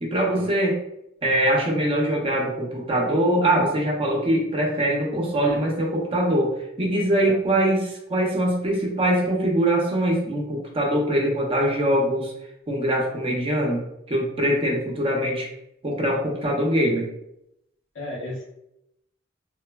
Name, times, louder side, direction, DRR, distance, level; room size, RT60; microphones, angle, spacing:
voice 1, 0.0-0.8 1.2-6.5 6.8-12.3 12.7-13.8 14.1-15.5 15.8-17.1, right 1 dB, 30° right, -1 dB, 0.5 m, -23 dB
voice 2, 17.9-18.4, left 1 dB, 80° left, -4 dB, 0.8 m, -33 dB
3.1 x 2.1 x 2.2 m, 0.81 s
head